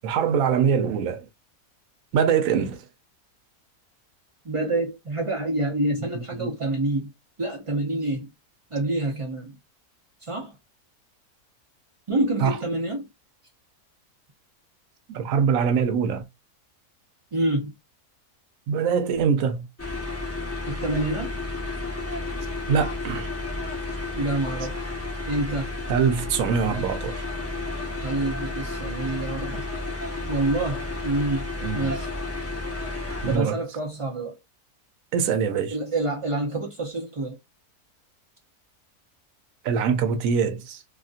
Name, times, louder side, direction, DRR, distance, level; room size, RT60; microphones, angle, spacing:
voice 1, 0.0-1.3 2.1-2.8 6.4-6.7 12.4-12.6 15.1-16.3 18.7-19.7 22.7-23.3 25.9-27.2 31.6-31.9 33.2-33.6 35.1-35.8 39.6-40.8, right 6 dB, 70° right, 1.0 m, -23 dB
voice 2, 4.4-7.1 7.4-8.3 8.7-9.6 10.2-10.6 12.1-13.1 17.3-17.7 20.7-21.4 24.1-24.8 25.2-25.7 28.0-29.7 30.3-31.5 31.7-32.1 33.3-34.4 35.7-37.4, right 2 dB, 45° right, 0.4 m, -27 dB
sound 1, 19.8-33.4, left 2 dB, 15° left, 0.5 m, -32 dB
2.8 x 2.6 x 2.4 m
omnidirectional pair, 1.6 m